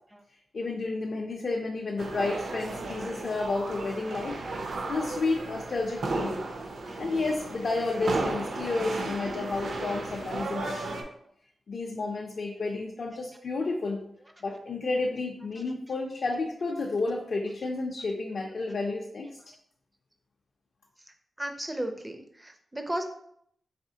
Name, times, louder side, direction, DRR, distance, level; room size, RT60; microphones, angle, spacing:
voice 1, 0.5-4.4 4.9-6.5 7.0-11.0 11.7-14.0 14.4-19.3, left 3 dB, 50° left, -1 dB, 0.4 m, -31 dB
sound 1, 2.0-11.0, right 2 dB, 65° right, 0.5 m, -34 dB
voice 2, 21.4-23.0, right 1 dB, 10° right, 5 dB, 0.4 m, -34 dB
4.1 x 3.0 x 2.7 m, 0.70 s
wide cardioid pair, 175°, 0 cm